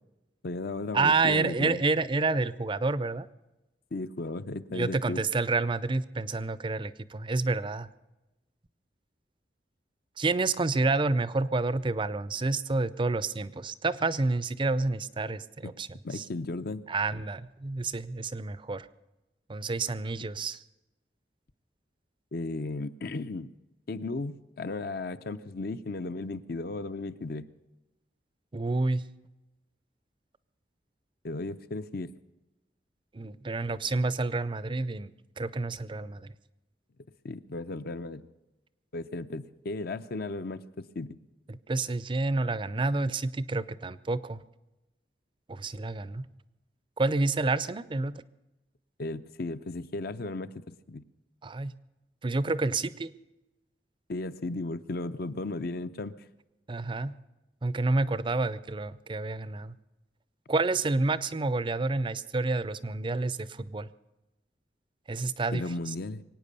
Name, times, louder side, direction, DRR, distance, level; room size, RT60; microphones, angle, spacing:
voice 1, 0.4-1.8 3.9-5.2 16.0-16.8 22.3-23.5 23.9-27.5 31.2-32.1 37.2-38.3 38.9-41.2 49.0-51.0 54.1-56.1 65.5-66.2, left 2 dB, 55° left, 12 dB, 0.6 m, -35 dB
voice 2, 0.9-3.3 4.7-7.9 10.2-16.3 16.9-18.9 19.5-20.6 28.5-29.0 33.1-36.3 41.5-44.4 45.5-46.3 47.0-48.1 51.4-51.7 52.2-53.1 56.7-57.1 57.6-59.8 60.5-63.9 65.1-65.9, right 3 dB, 30° right, 17 dB, 0.5 m, -29 dB
23.5 x 9.1 x 6.8 m, 1.0 s
head